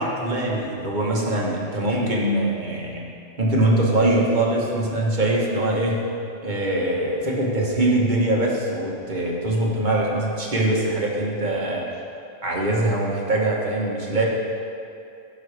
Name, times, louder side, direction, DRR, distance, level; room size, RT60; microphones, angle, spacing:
voice 1, 0.0-3.1 3.4-6.0 6.4-11.8 12.4-14.3, right 1 dB, 40° right, -3 dB, 1.3 m, -22 dB
11.5 x 6.2 x 3.3 m, 2.5 s
omnidirectional pair, 1.3 m